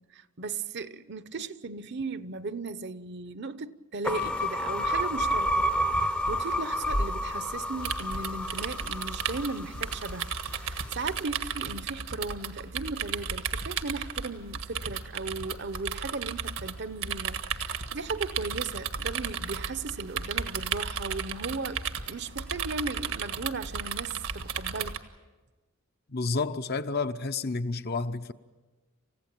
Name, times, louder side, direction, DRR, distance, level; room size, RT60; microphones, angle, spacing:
voice 1, 0.0-5.7 6.0-25.0, right 3 dB, 55° right, 0.9 m, -37 dB
sound 1, 4.1-10.4, equal, 5° left, 0.7 m, -29 dB
sound 2, 7.8-25.0, right 6 dB, 80° right, 1.6 m, -34 dB
voice 2, 26.1-28.3, left 3 dB, 45° left, 0.8 m, -30 dB
29.0 x 15.5 x 9.0 m
head